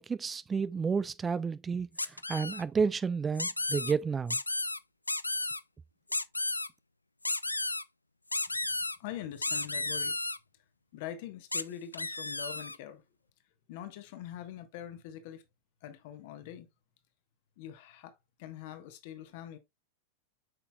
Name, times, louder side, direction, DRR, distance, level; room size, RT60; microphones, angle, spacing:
voice 1, 0.0-4.4, right 5 dB, 15° right, 0.3 m, -31 dB
sound 1, 2.0-2.6 3.4-3.9 4.3-4.8 5.1-5.6 6.1-6.7 7.2-7.8 8.3-9.0 9.4-10.4 11.5-11.6 11.9-12.8, left 2 dB, 85° left, 0.3 m, -33 dB
voice 2, 9.0-10.2 10.9-13.0 13.7-15.4 15.8-16.7 17.6-19.6, left 11 dB, 50° left, 1.3 m, -43 dB
7.9 x 5.7 x 2.3 m
figure-of-eight pair, 90°, 0 cm